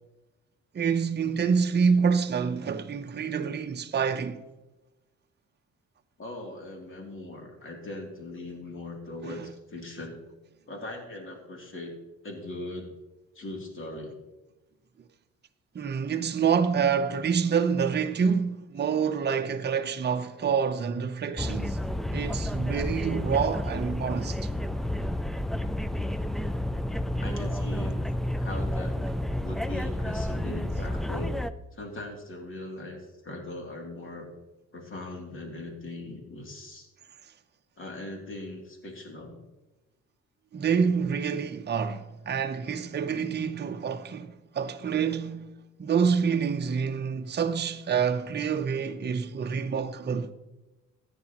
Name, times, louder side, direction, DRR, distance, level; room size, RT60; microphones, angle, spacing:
voice 1, 0.7-4.4 9.2-9.5 15.7-21.8 22.1-24.4 40.5-45.5 45.8-50.3, right 6 dB, 35° right, 0.8 m, -27 dB
voice 2, 6.2-10.2 10.7-12.0 12.2-12.9 13.3-14.2 27.2-27.9 28.3-29.0 29.4-31.3 31.7-34.3 34.7-36.9 37.8-39.4, left 2 dB, 40° left, 2.9 m, -40 dB
sound 1, 21.4-31.5, left 1 dB, ahead, 0.4 m, -30 dB
14.5 x 9.8 x 3.0 m
cardioid pair, 90°, 30 cm